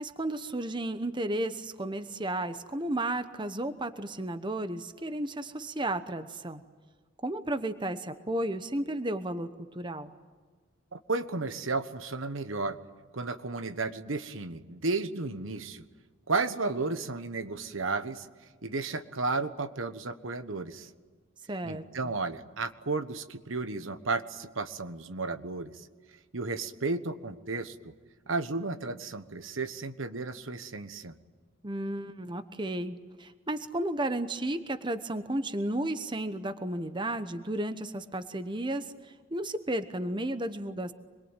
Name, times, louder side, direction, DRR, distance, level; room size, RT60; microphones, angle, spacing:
voice 1, 0.0-6.6 7.2-10.1 21.5-22.1 31.6-40.9, right 1 dB, 25° right, 10 dB, 1.0 m, -33 dB
voice 2, 10.9-12.8 13.1-15.8 16.3-18.3 18.6-20.9 21.6-25.9 26.3-27.7 28.3-31.1, right 3 dB, 70° right, 10 dB, 1.3 m, -33 dB
26.5 x 22.0 x 9.1 m, 1.4 s
head